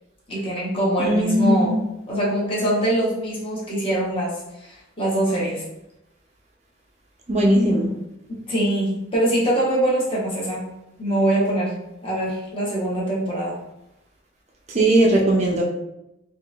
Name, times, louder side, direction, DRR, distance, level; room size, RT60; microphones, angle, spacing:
voice 1, 0.3-1.8 2.1-4.4 4.6-5.6 8.3-10.7 11.0-11.7 12.0-13.6, right 1 dB, 30° left, -6 dB, 0.9 m, -23 dB
voice 2, 1.0-1.8 7.3-7.9 14.7-15.6, right 1 dB, 35° right, -2 dB, 0.5 m, -18 dB
3.6 x 2.4 x 2.3 m, 0.88 s
head